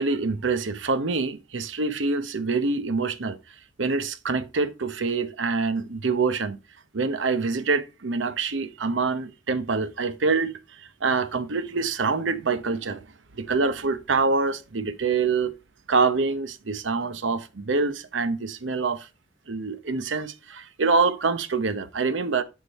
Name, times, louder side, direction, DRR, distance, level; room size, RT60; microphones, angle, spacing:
voice 1, 0.0-3.4 3.8-6.6 6.9-10.5 10.8-13.0 13.3-15.5 15.9-19.1 19.5-22.4, right 4 dB, 80° right, 0.8 m, -25 dB
10.5 x 3.8 x 4.1 m
head